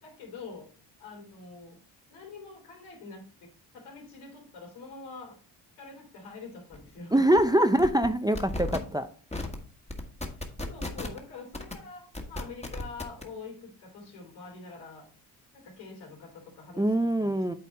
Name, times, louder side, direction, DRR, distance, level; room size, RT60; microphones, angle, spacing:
voice 1, 0.0-0.7 1.0-1.8 2.1-5.4 5.8-7.3 10.7-15.1 15.5-17.6, left 4 dB, 85° left, 3.5 m, -45 dB
sound 1, 6.7-6.8 7.1-7.4 7.8-8.1 8.3-8.8 9.3-9.6 9.9-11.2 11.5-11.7 12.1-13.2, left 2 dB, 15° left, 1.5 m, -34 dB
voice 2, 7.1-9.1 16.8-17.5, right 1 dB, 10° right, 0.5 m, -23 dB
8.4 x 4.2 x 4.2 m
supercardioid pair, 70°, 47 cm